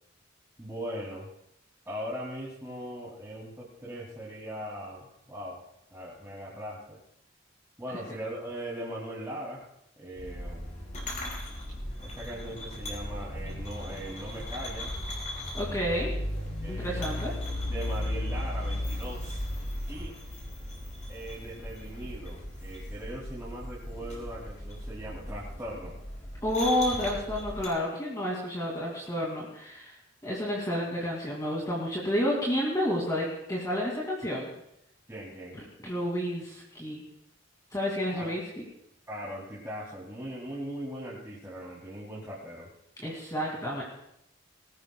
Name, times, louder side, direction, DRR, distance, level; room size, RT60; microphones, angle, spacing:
voice 1, 0.6-1.3 1.8-5.6 5.9-7.0 7.8-9.7 10.0-10.8 12.0-14.9 16.6-17.1 17.7-19.4 19.9-20.1 21.1-25.9 35.1-35.6 38.1-38.3 39.1-42.7, equal, 15° right, -7 dB, 2.7 m, -39 dB
sound 1, 10.2-27.7, left 1 dB, 40° left, 5.5 m, -36 dB
voice 2, 15.5-16.1 16.7-17.7 26.4-30.0 30.2-34.5 35.8-37.0 37.7-38.4 43.0-43.8, equal, 20° left, -4 dB, 2.5 m, -30 dB
21.0 x 18.5 x 2.3 m, 0.79 s
head